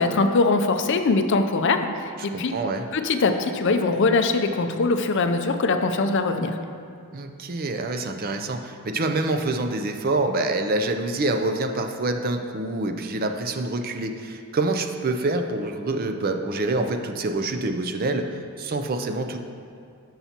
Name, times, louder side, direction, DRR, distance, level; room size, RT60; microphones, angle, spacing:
voice 1, 0.0-2.5 2.9-6.6, left 3 dB, 55° left, 7 dB, 0.5 m, -22 dB
voice 2, 2.3-2.9 7.1-18.3 18.6-19.4, right 2 dB, 40° right, 6 dB, 0.5 m, -26 dB
12.5 x 5.6 x 2.9 m, 2.5 s
head